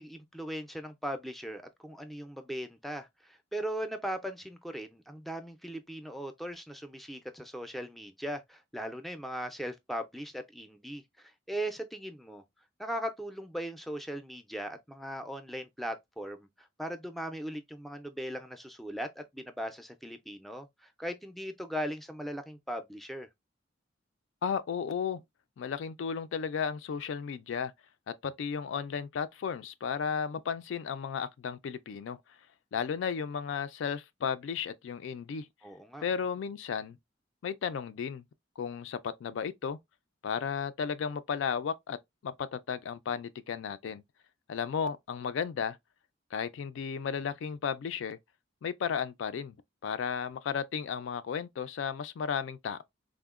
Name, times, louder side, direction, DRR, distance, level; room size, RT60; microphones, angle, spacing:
voice 1, 0.0-12.4 12.8-23.3 35.6-36.0, equal, ahead, 0.3 m, -39 dB
voice 2, 24.4-25.2 25.6-27.7 28.1-32.2 32.7-35.5 36.0-37.0 37.4-38.2 38.6-39.8 40.2-42.0 42.2-44.0 44.5-45.8 46.3-48.2 48.6-49.5 49.8-52.8, left 7 dB, 75° left, 0.3 m, -34 dB
3.6 x 2.0 x 2.3 m
head